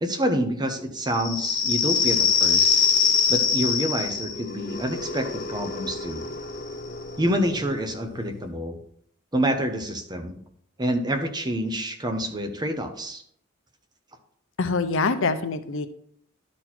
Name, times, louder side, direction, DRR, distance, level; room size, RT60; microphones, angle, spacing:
voice 1, 0.0-2.9 3.3-6.2 7.2-8.8 9.3-10.4 10.8-13.2, equal, 20° right, 6 dB, 0.9 m, -27 dB
sound 1, 1.1-8.4, left 6 dB, 40° left, 1.0 m, -25 dB
voice 2, 14.6-15.9, left 4 dB, 65° left, 10 dB, 0.7 m, -24 dB
12.0 x 4.3 x 4.4 m, 0.66 s
head